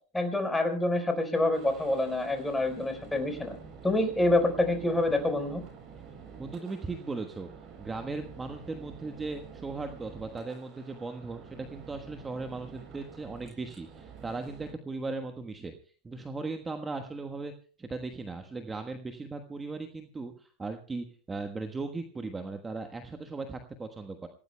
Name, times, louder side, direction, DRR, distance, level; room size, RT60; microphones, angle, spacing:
voice 1, 0.1-3.6 3.8-5.6, left 2 dB, 10° left, 5 dB, 4.4 m, -27 dB
sound 1, 1.5-14.7, right 6 dB, 45° right, 8.0 m, -49 dB
voice 2, 6.4-7.5 7.8-15.7 16.0-17.5 17.8-24.3, right 3 dB, 15° right, 5 dB, 1.3 m, -37 dB
27.0 x 17.5 x 2.3 m, 0.40 s
hypercardioid pair, 100°, 0 cm